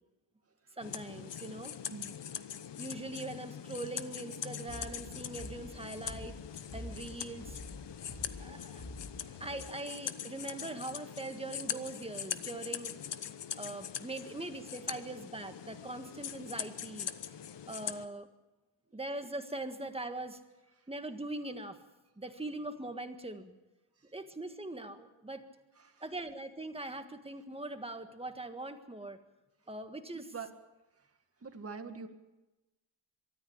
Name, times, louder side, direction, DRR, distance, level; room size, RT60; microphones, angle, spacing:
sound 1, 0.8-18.1, left 9 dB, 65° left, 1.1 m, -42 dB
voice 1, 0.8-1.8 2.8-6.4 6.7-7.6 8.4-8.8 9.4-13.0 13.6-17.1 17.7-18.3 18.9-20.4 20.9-21.8 22.2-23.5 24.1-25.4 26.0-29.2 29.7-30.3, right 2 dB, 15° right, 7 dB, 1.7 m, -41 dB
sound 2, 4.6-9.7, left 1 dB, 50° left, 3.3 m, -48 dB
voice 2, 30.1-30.5 31.4-32.1, right 5 dB, 30° right, 6 dB, 2.0 m, -44 dB
23.5 x 14.0 x 8.8 m, 1.0 s
wide cardioid pair, 125°, 46 cm